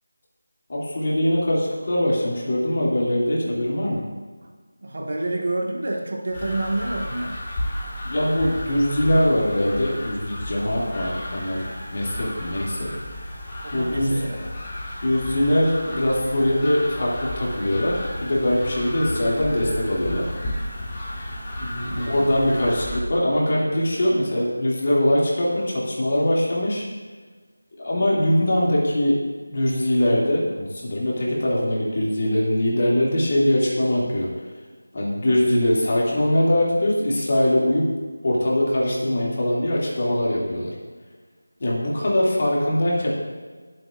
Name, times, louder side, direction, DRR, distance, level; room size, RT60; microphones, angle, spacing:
voice 1, 0.7-4.0 8.0-11.7 11.9-12.9 13.7-14.2 15.0-20.3 21.6-26.9 27.8-29.2 29.5-34.3 34.9-37.9 38.2-40.7 41.6-43.1, left 1 dB, 40° left, -5 dB, 2.5 m, -22 dB
voice 2, 4.8-7.4 13.6-14.4 21.8-22.3, right 2 dB, 50° right, 0 dB, 1.6 m, -28 dB
sound 1, 6.3-23.0, left 1 dB, 15° left, 1.5 m, -33 dB
18.0 x 7.7 x 2.5 m, 1.4 s
figure-of-eight pair, 175°, 0 cm